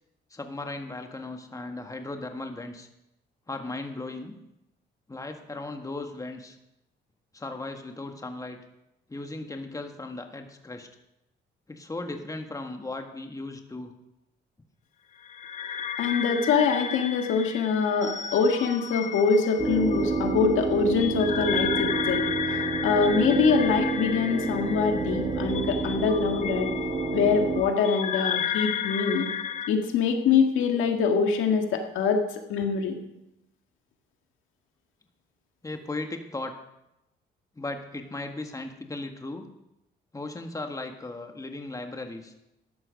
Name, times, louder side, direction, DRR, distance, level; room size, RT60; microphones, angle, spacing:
voice 1, 0.3-2.9 3.5-4.3 5.1-6.6 7.3-8.6 9.1-10.9 11.7-13.9 35.6-36.5 37.5-39.4 40.1-42.3, left 2 dB, 15° left, 4 dB, 1.6 m, -36 dB
sound 1, 15.2-29.7, left 8 dB, 35° left, 0.9 m, -33 dB
voice 2, 16.0-26.7 27.1-29.3 29.7-32.9, left 5 dB, 85° left, 4 dB, 1.9 m, -24 dB
sound 2, 19.6-27.6, right 4 dB, 30° right, 6.7 m, -29 dB
14.0 x 11.0 x 5.2 m, 0.88 s
cardioid pair, 90°, 20 cm